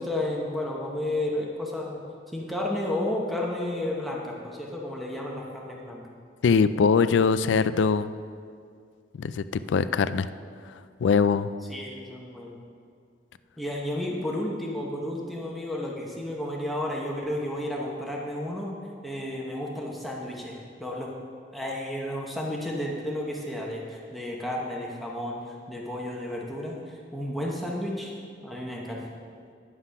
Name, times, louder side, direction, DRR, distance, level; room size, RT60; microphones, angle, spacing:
voice 1, 0.0-2.0 2.3-6.1 11.7-12.5 13.6-18.7 19.0-21.1 21.5-25.4 25.7-28.1 28.4-29.0, left 1 dB, ahead, -3 dB, 1.0 m, -32 dB
voice 2, 6.4-8.1 9.2-10.3 11.0-11.5, left 5 dB, 80° left, 14 dB, 0.3 m, -22 dB
9.7 x 5.8 x 5.7 m, 2.2 s
head